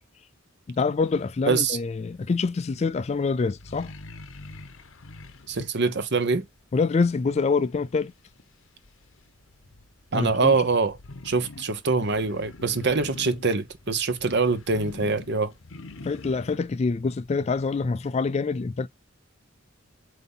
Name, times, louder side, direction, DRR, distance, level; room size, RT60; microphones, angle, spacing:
voice 1, 0.7-3.9 6.7-8.1 10.1-10.7 16.0-18.9, left 4 dB, 30° left, 0.3 m, -26 dB
sound 1, 1.0-18.0, left 2 dB, 75° left, 0.9 m, -46 dB
voice 2, 1.5-1.8 5.5-6.4 10.1-11.0 11.2-15.5, right 4 dB, 55° right, 0.9 m, -24 dB
7.9 x 2.8 x 5.4 m
head